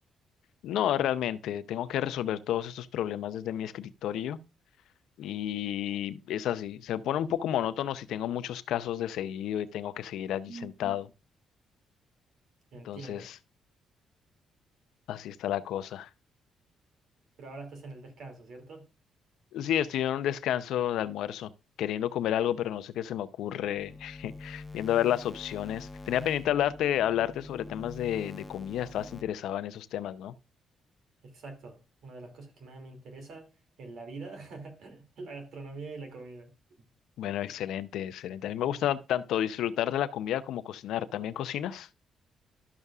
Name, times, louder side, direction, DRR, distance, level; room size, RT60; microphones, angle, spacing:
voice 1, 0.6-4.4 5.2-11.1 12.8-13.3 15.1-16.1 19.5-21.5 21.8-30.3 37.2-41.9, left 11 dB, 80° left, 0.5 m, -31 dB
voice 2, 10.5-11.0 12.7-13.3 17.4-18.9 31.2-33.5 33.8-36.5 36.8-36.9, right 3 dB, 70° right, 2.5 m, -44 dB
sound 1, 23.8-29.2, left 3 dB, 20° left, 0.6 m, -45 dB
12.5 x 6.6 x 2.4 m
cardioid pair, 90°, 0 cm